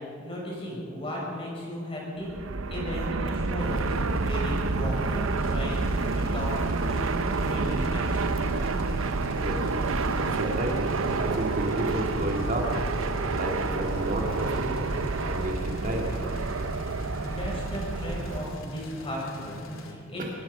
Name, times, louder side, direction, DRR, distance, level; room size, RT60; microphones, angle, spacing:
voice 1, 0.2-2.3 2.7-3.9 4.2-5.8 6.2-8.5 17.2-20.2, equal, 25° left, -4 dB, 6.7 m, -35 dB
Fixed-wing aircraft airplane, 2.2-18.6, right 3 dB, 80° right, 0.8 m, -29 dB
sound 1, 3.6-19.9, equal, 80° left, 2.5 m, -42 dB
voice 2, 9.4-9.7 10.1-10.8 11.2-12.8 13.3-14.8 15.2-16.1 20.2-20.3, right 1 dB, 40° right, 0 dB, 2.1 m, -31 dB
24.0 x 20.0 x 5.5 m, 2.3 s
head